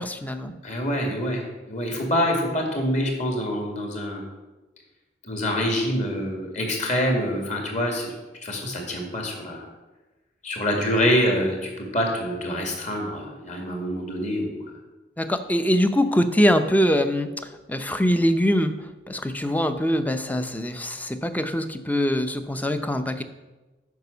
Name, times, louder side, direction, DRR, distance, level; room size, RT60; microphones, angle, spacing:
voice 1, 0.0-0.6 15.2-23.2, equal, 10° left, 9 dB, 0.6 m, -23 dB
voice 2, 0.6-4.2 5.2-8.1 8.4-9.6 10.4-11.6 11.9-14.6, equal, 45° left, 2 dB, 2.2 m, -25 dB
9.4 x 5.9 x 6.8 m, 1.1 s
head